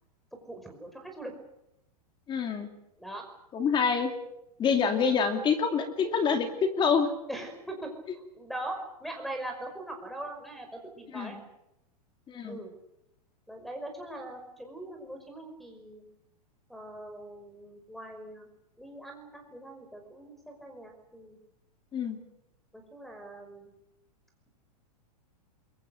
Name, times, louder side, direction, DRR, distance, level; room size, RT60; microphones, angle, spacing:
voice 1, 0.3-1.3 3.0-3.2 7.3-11.4 12.5-12.7 13.5-16.1 16.7-18.5 18.8-21.4 22.7-23.7, right 1 dB, ahead, 6 dB, 5.4 m, -41 dB
voice 2, 2.3-2.7 3.5-4.1 4.6-7.1 11.1-11.3 12.3-12.6 21.9-22.2, left 6 dB, 20° left, 6 dB, 2.7 m, -26 dB
28.0 x 23.0 x 6.6 m, 0.84 s
hypercardioid pair, 135°, 21 cm